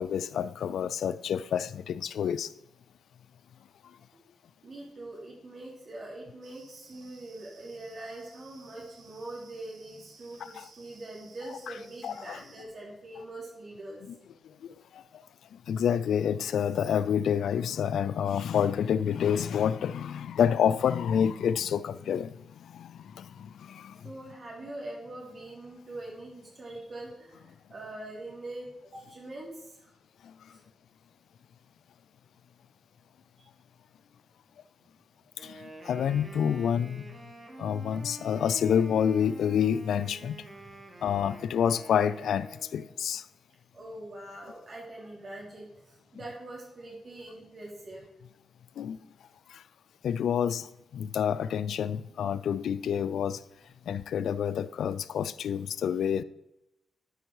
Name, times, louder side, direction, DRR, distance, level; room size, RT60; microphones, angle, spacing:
voice 1, 0.0-2.5 10.6-10.7 12.0-12.4 14.9-15.0 15.7-22.3 22.6-24.0 35.4-37.2 37.6-40.4 41.0-43.2 48.8-49.0 49.5-49.6 50.0-50.7 50.9-53.4 53.9-56.2, left 8 dB, 85° left, 0.3 m, -28 dB
voice 2, 4.6-14.0 24.0-29.9 30.5-30.6 33.4-33.5 35.4-35.5 43.7-48.1, right 2 dB, 50° right, 3.7 m, -43 dB
sound 1, 6.4-12.7, right 5 dB, 75° right, 1.4 m, -57 dB
Wind instrument woodwind instrument, 35.4-43.0, right 1 dB, 35° right, 2.0 m, -47 dB
11.5 x 5.4 x 4.7 m
cardioid pair, 65°, 0 cm